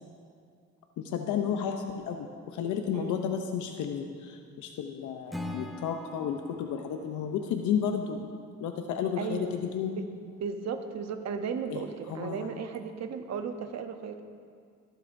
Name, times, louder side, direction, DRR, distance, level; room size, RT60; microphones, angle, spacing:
voice 1, 1.0-8.2 8.6-9.9 11.7-11.8 12.1-12.5, left 8 dB, 80° left, 5 dB, 0.6 m, -32 dB
Acoustic guitar / Strum, 5.3-8.5, left 1 dB, ahead, 0.8 m, -43 dB
voice 2, 9.2-9.6 9.9-14.2, right 6 dB, 60° right, 7 dB, 0.9 m, -35 dB
17.0 x 7.7 x 2.6 m, 2.2 s
cardioid pair, 90°, 30 cm